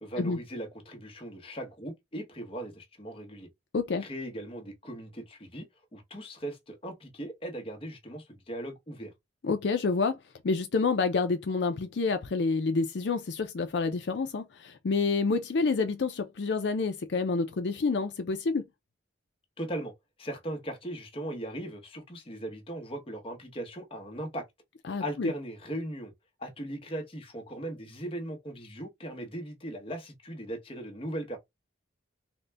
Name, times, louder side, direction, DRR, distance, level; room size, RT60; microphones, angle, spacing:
voice 1, 0.0-3.5 4.0-5.6 5.9-9.1 19.6-19.9 20.2-24.4 25.0-26.1 26.4-31.4, right 1 dB, 30° left, 0.9 m, -38 dB
voice 2, 3.7-4.1 9.4-10.2 10.4-18.6 24.9-25.3, left 4 dB, 65° left, 0.5 m, -28 dB
3.8 x 2.2 x 3.3 m
head